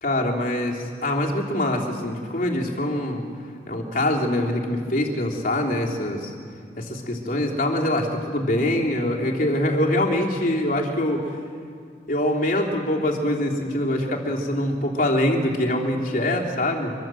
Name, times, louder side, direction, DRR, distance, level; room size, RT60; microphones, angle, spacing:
voice 1, 0.0-3.2 3.7-6.3 6.8-11.3 12.1-16.9, left 1 dB, 50° left, -1 dB, 3.4 m, -24 dB
26.0 x 22.5 x 7.8 m, 2.2 s
head